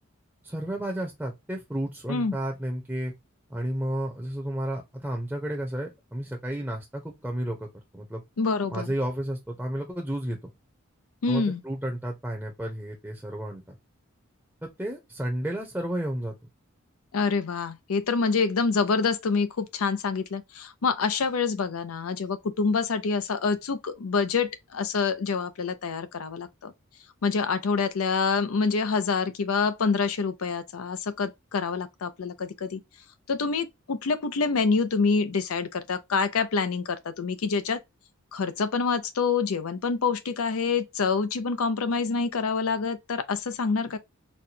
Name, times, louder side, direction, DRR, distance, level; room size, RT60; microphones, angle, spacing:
voice 1, 0.4-3.1 3.5-7.7 7.9-8.2 8.7-10.4 11.3-13.6 14.6-16.3, right 1 dB, 5° right, 0.6 m, -32 dB
voice 2, 8.4-8.9 11.2-11.6 17.1-26.7 27.2-32.8 33.3-37.8 38.3-44.0, left 4 dB, 90° left, 0.5 m, -26 dB
4.2 x 2.2 x 2.6 m
head